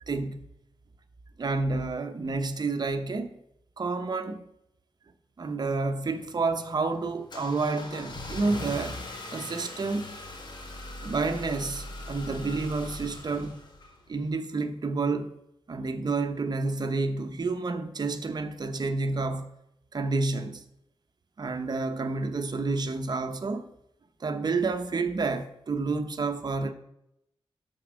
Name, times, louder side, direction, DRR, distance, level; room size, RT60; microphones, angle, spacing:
voice 1, 0.1-0.4 1.4-3.4 3.8-4.4 5.4-9.0 9.3-10.2 11.0-13.6 14.1-15.4 15.7-19.5 19.9-20.6 21.4-23.7 24.2-26.7, right 3 dB, 45° right, 0.9 m, -29 dB
Car / Engine starting, 6.0-14.2, left 2 dB, 50° left, 1.7 m, -40 dB
12.5 x 4.6 x 6.2 m
wide cardioid pair, 115°, 10 cm